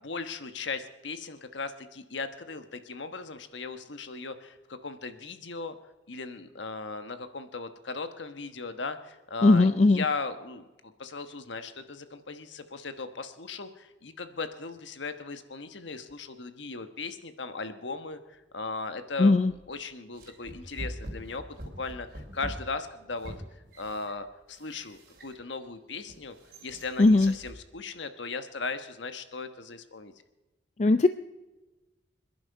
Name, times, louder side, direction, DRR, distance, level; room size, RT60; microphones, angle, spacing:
voice 1, 0.0-5.7 6.1-19.4 19.7-23.3 23.8-26.3 26.6-30.1, left 4 dB, 75° left, 9 dB, 1.2 m, -37 dB
voice 2, 9.4-10.0 19.2-19.5 27.0-27.3 30.8-31.1, left 2 dB, 40° left, 11 dB, 0.4 m, -19 dB
sound 1, 19.5-19.7 20.2-25.6 26.1-27.6, right 1 dB, 50° right, 3.2 m, -44 dB
26.5 x 11.0 x 4.7 m, 1.1 s
head